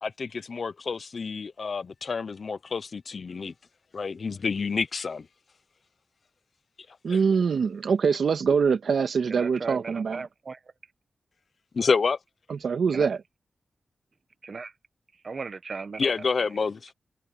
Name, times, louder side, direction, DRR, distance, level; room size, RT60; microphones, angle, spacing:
voice 1, 0.0-3.5 3.9-5.3 6.9-7.2 11.7-12.2 16.0-16.9, left 5 dB, 60° left, 1.0 m, -28 dB
voice 2, 7.0-10.3 12.5-13.2, right 6 dB, 80° right, 2.2 m, -24 dB
voice 3, 9.3-10.6 12.9-13.1 14.4-14.7 15.2-16.2, right 4 dB, 55° right, 1.5 m, -37 dB
cardioid pair, 75°, 0 cm